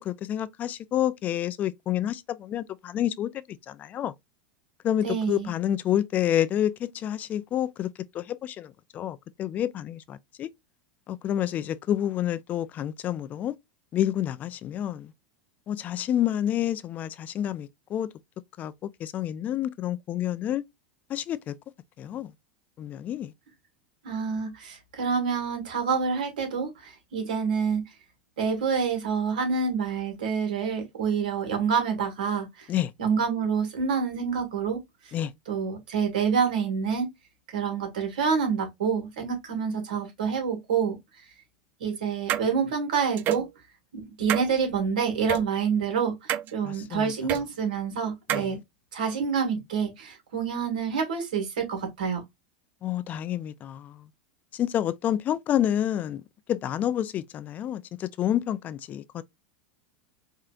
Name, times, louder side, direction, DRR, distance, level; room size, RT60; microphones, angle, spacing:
voice 1, 0.0-3.3 3.7-4.1 4.8-7.9 8.1-10.5 11.1-13.5 13.9-15.1 15.7-18.1 18.6-18.7 19.0-20.6 21.1-21.5 22.0-22.3 22.8-23.3 32.7-32.9 35.1-35.3 46.6-47.1 48.3-48.5 52.8-54.0 54.5-56.2 56.5-59.2, left 11 dB, 35° left, 0.4 m, -28 dB
voice 2, 5.0-5.5 24.0-27.8 28.4-32.7 33.0-34.8 35.0-35.1 35.5-37.1 37.5-41.0 41.8-43.4 43.9-48.6 48.9-52.2, right 6 dB, 75° right, 1.8 m, -27 dB
sound 1, 42.3-42.5 43.2-43.5 44.3-44.5 45.3-45.4 46.3-46.5 47.3-47.4 48.3-48.5, right 11 dB, 45° right, 0.4 m, -27 dB
4.8 x 2.7 x 2.3 m
hypercardioid pair, 95°, 5 cm